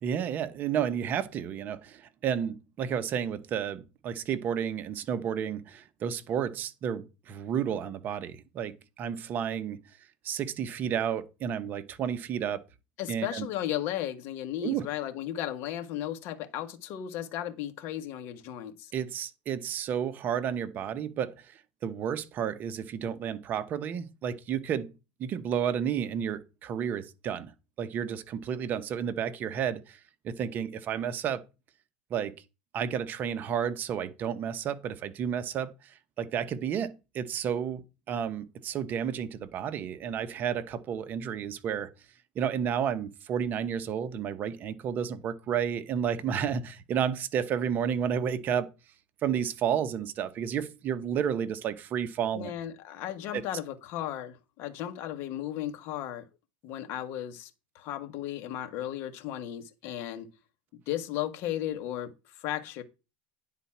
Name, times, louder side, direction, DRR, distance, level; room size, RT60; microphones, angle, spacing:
voice 1, 0.0-9.8 10.2-12.6 13.1-13.5 14.6-14.8 18.9-24.9 25.2-27.5 27.8-31.4 32.1-32.4 32.7-41.9 42.3-48.7 49.2-52.5 53.3-53.4, right 8 dB, 35° right, 0.9 m, -31 dB
voice 2, 13.0-18.9 52.3-56.2 56.6-57.5 57.7-60.3 60.9-62.8, left 12 dB, 50° left, 1.4 m, -35 dB
9.7 x 4.1 x 5.8 m
supercardioid pair, 135°, 5 cm